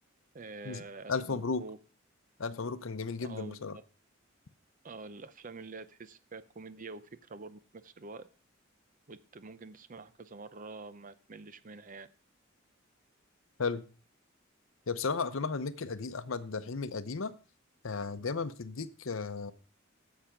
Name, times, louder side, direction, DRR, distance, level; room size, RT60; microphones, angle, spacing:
voice 1, 0.3-1.8 3.2-3.8 4.8-8.3 9.1-12.1, right 3 dB, 40° right, 0.7 m, -47 dB
voice 2, 1.1-1.6 2.4-3.8 13.6-13.8 14.9-17.3 17.8-19.5, left 4 dB, 80° left, 0.7 m, -34 dB
10.0 x 7.6 x 5.1 m
head